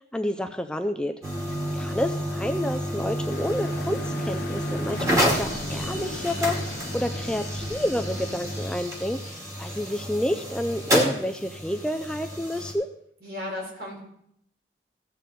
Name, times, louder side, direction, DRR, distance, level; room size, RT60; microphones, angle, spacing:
voice 1, 0.1-1.1 1.7-12.9, left 1 dB, 5° left, 6 dB, 0.4 m, -29 dB
sound 1, 1.2-12.7, equal, 20° right, 2.2 m, -29 dB
sound 2, 3.3-8.7, left 2 dB, 75° left, 0.7 m, -39 dB
voice 2, 13.2-14.0, left 1 dB, 65° right, -1 dB, 4.0 m, -34 dB
15.5 x 7.7 x 4.2 m, 0.73 s
head